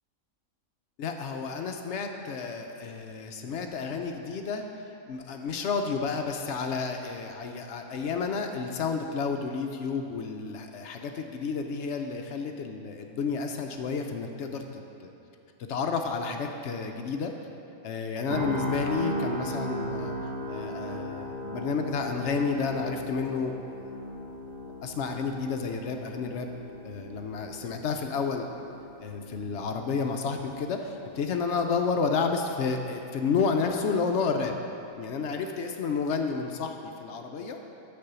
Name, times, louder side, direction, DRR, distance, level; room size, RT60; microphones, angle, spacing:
voice 1, 1.0-4.6 5.1-15.1 15.7-17.3 17.8-20.1 20.5-23.5 24.8-26.5 26.8-28.5 29.0-34.6 35.0-37.6, left 5 dB, 65° left, 4 dB, 0.8 m, -31 dB
sound 1, 18.3-32.3 32.6-32.9, equal, 35° right, 1.2 m, -37 dB
6.8 x 5.3 x 6.8 m, 2.7 s
omnidirectional pair, 1.5 m